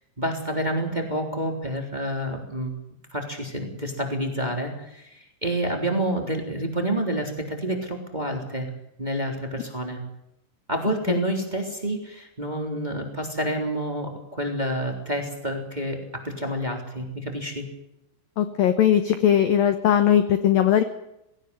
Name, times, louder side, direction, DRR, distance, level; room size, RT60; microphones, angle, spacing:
voice 1, 0.2-2.7 3.1-8.7 9.0-10.0 10.7-17.7, right 1 dB, 10° right, 4 dB, 2.9 m, -28 dB
voice 2, 18.4-20.8, left 10 dB, 70° left, 10 dB, 2.1 m, -19 dB
20.0 x 17.5 x 8.2 m, 0.85 s
omnidirectional pair, 5.7 m